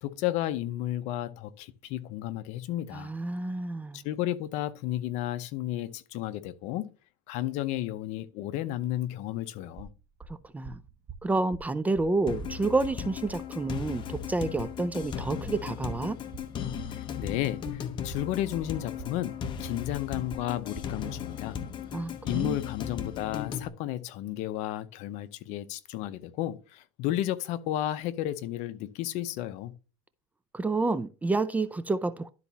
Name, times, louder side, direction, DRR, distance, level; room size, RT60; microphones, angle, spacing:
voice 1, 0.0-3.1 3.9-6.9 7.3-9.9 16.9-19.3 19.6-21.6 22.2-29.7, left 13 dB, 60° left, 0.7 m, -33 dB
voice 2, 2.9-4.0 10.5-10.8 11.2-16.2 21.9-22.6 30.5-32.3, right 3 dB, 10° right, 0.4 m, -29 dB
sound 1, 9.8-20.9, right 5 dB, 30° right, 1.0 m, -45 dB
sound 2, 12.3-23.7, left 8 dB, 40° left, 1.0 m, -37 dB
12.0 x 4.1 x 2.8 m
supercardioid pair, 120°, 13 cm